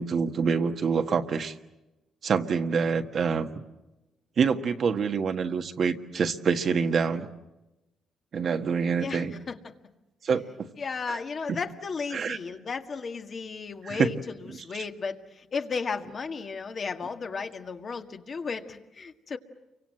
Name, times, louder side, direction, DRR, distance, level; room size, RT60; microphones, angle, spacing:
voice 1, 0.0-1.5 2.2-3.5 4.4-7.3 8.3-9.3 10.2-10.7 11.1-11.2 11.5-11.6 12.1-12.4 13.8-14.1 14.5-14.8, right 6 dB, 55° right, 6 dB, 1.5 m, -26 dB
voice 2, 9.0-9.6 10.8-15.2 15.5-19.4, left 5 dB, 45° left, 5 dB, 1.8 m, -34 dB
29.5 x 24.5 x 7.6 m, 1.0 s
cardioid pair, 90°, 0 cm